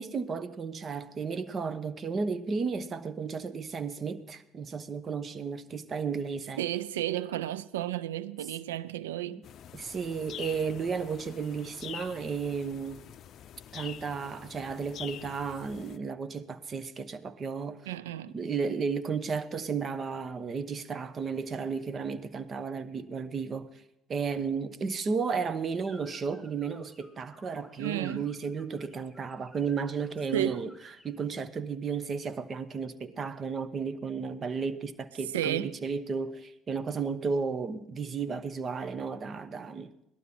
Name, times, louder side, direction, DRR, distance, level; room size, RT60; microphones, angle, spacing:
voice 1, 0.0-6.6 9.3-9.4 9.7-13.0 13.7-17.8 18.3-23.7 24.1-30.7 31.0-39.9, right 5 dB, 40° right, 1.0 m, -33 dB
voice 2, 6.6-9.4 17.9-18.3 27.8-28.3 30.3-30.6 35.3-35.7, right 13 dB, 85° right, 0.5 m, -32 dB
sound 1, 9.4-16.0, left 10 dB, 55° left, 0.5 m, -46 dB
sound 2, 25.8-31.2, left 1 dB, 10° right, 3.5 m, -57 dB
17.5 x 12.0 x 4.3 m
hypercardioid pair, 60°, 0 cm